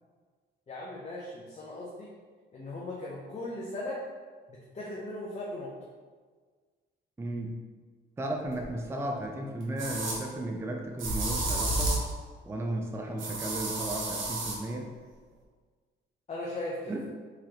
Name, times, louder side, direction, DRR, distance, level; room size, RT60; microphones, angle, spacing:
voice 1, 0.7-2.1 2.5-4.0 4.5-5.7 16.3-16.9, left 1 dB, 35° left, -4 dB, 0.7 m, -38 dB
voice 2, 7.2-7.6 8.2-12.0 12.5-14.9 16.9-17.2, right 1 dB, 15° right, 2 dB, 0.4 m, -34 dB
sound 1, 8.6-8.7 9.8-10.2 11.0-12.1 13.2-14.6, right 2 dB, 75° right, 0.9 m, -31 dB
3.8 x 3.1 x 2.9 m, 1.5 s
cardioid pair, 90°, 20 cm